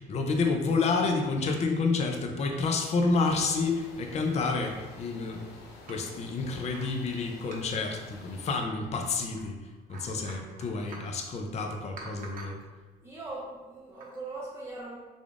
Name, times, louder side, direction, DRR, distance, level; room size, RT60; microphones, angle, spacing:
voice 1, 0.0-5.4 5.9-9.6 9.9-12.6, left 4 dB, 40° left, 3 dB, 0.5 m, -29 dB
sound 1, 1.4-2.8 3.2-3.7 4.1-4.2 4.4-4.9 5.4-6.1 6.7-7.9 8.9-9.4 9.7-11.2 12.0-12.7 13.8-14.2, right 3 dB, 55° right, 0.7 m, -49 dB
sound 2, 3.1-8.6, left 3 dB, 85° left, 0.6 m, -50 dB
voice 2, 13.0-15.0, right 2 dB, 15° right, -4 dB, 0.5 m, -40 dB
3.5 x 3.4 x 2.4 m, 1.3 s
cardioid pair, 110°, 17 cm